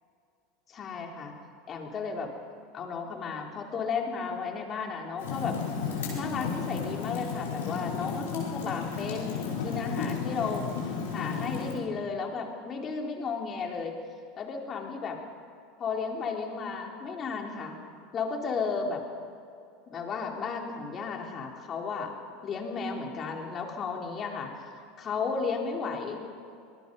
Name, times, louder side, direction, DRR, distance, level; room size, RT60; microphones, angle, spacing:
voice 1, 0.7-1.4 1.7-2.3 2.7-5.6 6.1-14.0 14.4-15.2 15.8-17.8 18.1-19.0 19.9-22.1 22.4-26.2, left 5 dB, 35° left, 1 dB, 3.9 m, -34 dB
Fire, 5.2-11.7, left 6 dB, 75° left, 5.2 m, -33 dB
24.5 x 20.5 x 5.4 m, 2.5 s
hypercardioid pair, 80°, 0 cm